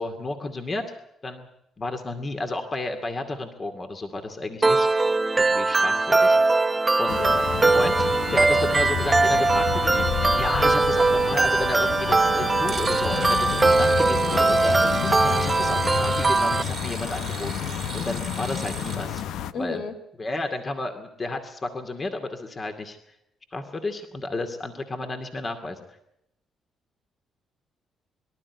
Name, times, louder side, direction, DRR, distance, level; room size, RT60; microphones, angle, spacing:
voice 1, 0.0-1.5 1.8-4.9 5.4-6.4 7.0-7.2 7.7-17.5 17.9-19.2 19.6-19.8 20.2-23.0 23.5-25.8, left 2 dB, 35° left, 6 dB, 2.3 m, -32 dB
sound 1, 4.6-16.6, right 3 dB, 25° right, 0.9 m, -21 dB
sound 2, 7.1-19.5, left 9 dB, 85° left, 0.8 m, -30 dB
voice 2, 7.2-7.6 19.5-19.9, left 4 dB, 70° left, 7 dB, 3.5 m, -33 dB
sound 3, 12.7-19.3, right 6 dB, 45° right, 1.6 m, -38 dB
24.0 x 12.5 x 9.5 m, 0.83 s
cardioid pair, 90°, 0 cm